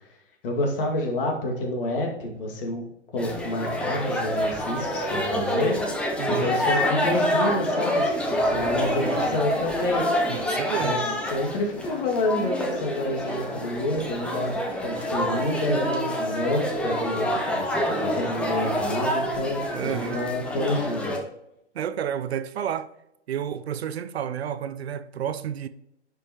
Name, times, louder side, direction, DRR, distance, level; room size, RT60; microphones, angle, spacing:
voice 1, 0.4-2.9 3.1-5.8 6.3-10.0 10.8-11.0 11.3-14.6 14.8-21.1, left 1 dB, 50° left, 2.1 m, -28 dB
sound 1, 3.2-21.2, equal, 5° left, 0.5 m, -27 dB
voice 2, 6.2-6.6 8.6-9.4 10.3-11.0 15.7-15.9 19.7-20.2 21.7-22.9 23.3-25.7, right 9 dB, 65° right, 0.6 m, -31 dB
10.5 x 5.2 x 2.9 m
hypercardioid pair, 130°, 35 cm